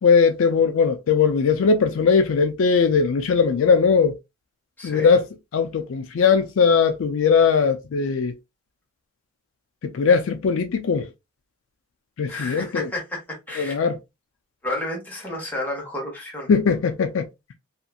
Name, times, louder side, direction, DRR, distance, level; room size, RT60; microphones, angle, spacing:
voice 1, 0.0-4.1 4.8-5.2 5.5-8.3 9.8-11.1 12.2-12.9 13.6-14.0 16.5-17.3, left 5 dB, 65° left, 0.4 m, -19 dB
voice 2, 4.8-5.1 12.3-13.8 14.6-16.5, left 1 dB, 10° left, 1.1 m, -31 dB
2.8 x 2.4 x 2.4 m
head